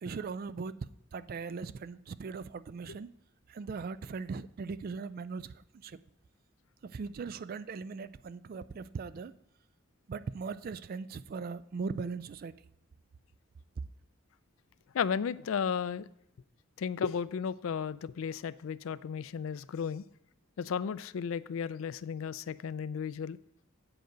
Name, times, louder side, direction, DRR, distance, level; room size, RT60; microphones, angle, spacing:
voice 1, 0.0-3.1 3.5-6.0 6.8-9.4 10.1-12.6, right 4 dB, 45° right, 0.3 m, -39 dB
voice 2, 14.9-16.1 16.8-20.0 20.6-23.4, left 7 dB, 85° left, 0.4 m, -34 dB
7.9 x 7.8 x 5.1 m
head